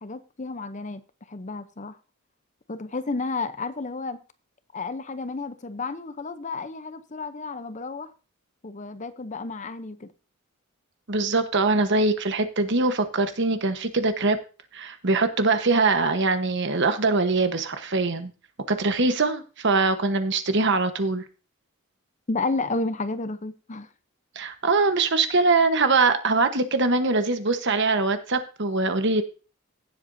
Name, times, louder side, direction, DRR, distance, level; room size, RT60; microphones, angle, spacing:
voice 1, 0.0-1.0 1.3-2.0 2.7-4.2 4.7-8.1 8.6-10.1 22.3-23.9, left 3 dB, 35° left, 0.7 m, -31 dB
voice 2, 11.1-14.4 14.7-18.3 18.7-21.2 24.3-29.2, right 3 dB, 55° right, 1.1 m, -22 dB
16.5 x 7.8 x 2.7 m
head